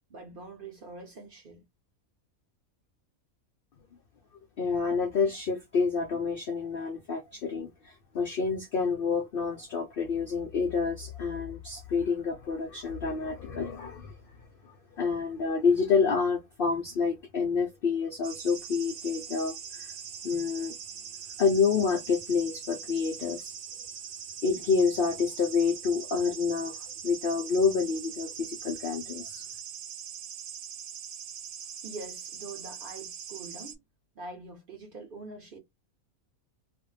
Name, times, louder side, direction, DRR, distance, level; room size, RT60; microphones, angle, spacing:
voice 1, 0.1-1.7 31.8-33.8 34.1-35.6, right 3 dB, 45° right, 0.8 m, -44 dB
voice 2, 4.6-14.2 14.6-19.9 20.2-20.7 21.4-23.5 24.4-26.8 27.0-29.4, left 5 dB, 70° left, 0.5 m, -28 dB
sound 1, 18.2-33.8, right 8 dB, 75° right, 1.1 m, -42 dB
2.5 x 2.1 x 3.1 m
omnidirectional pair, 1.5 m